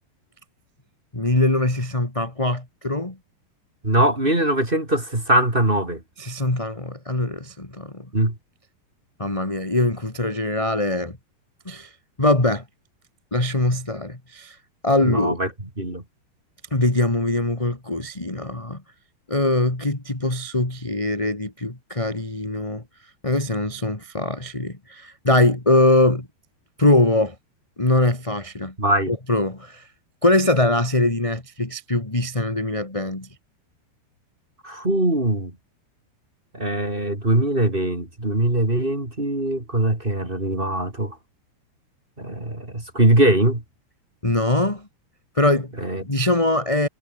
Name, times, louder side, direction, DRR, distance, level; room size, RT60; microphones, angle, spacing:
voice 1, 1.1-3.2 6.2-8.1 9.2-11.2 11.6-11.9 12.2-12.6 13.3-14.6 14.8-15.4 16.7-18.8 19.3-22.8 23.2-26.3 26.8-27.4 27.8-28.7 29.1-29.9 30.2-33.3 44.2-44.9 45.4-45.7 46.0-46.9, left 2 dB, 10° left, 1.8 m, -22 dB
voice 2, 3.8-6.0 8.1-8.3 15.0-15.5 15.8-16.0 28.8-29.1 34.6-35.5 36.5-41.2 42.2-43.6 45.8-46.0, right 1 dB, 15° right, 3.5 m, -21 dB
omnidirectional pair, 4.9 m